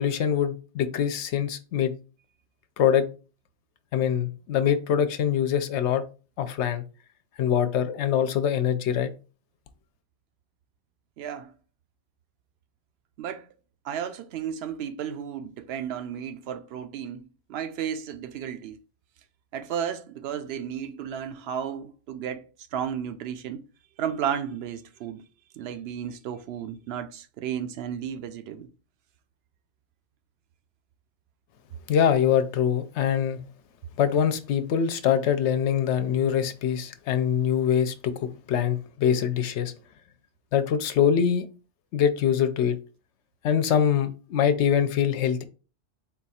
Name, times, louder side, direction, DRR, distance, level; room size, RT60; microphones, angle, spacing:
voice 1, 0.0-1.9 2.8-3.1 3.9-6.0 6.4-6.8 7.4-9.1 31.9-33.4 34.0-39.7 40.5-41.4 41.9-42.8 43.4-45.4, left 8 dB, 75° left, 0.8 m, -24 dB
voice 2, 11.2-11.5 13.2-13.5 13.8-18.8 19.5-22.4 22.7-23.6 24.0-25.2 25.5-28.7, right 8 dB, 65° right, 0.7 m, -33 dB
4.1 x 2.4 x 4.1 m
omnidirectional pair, 1.2 m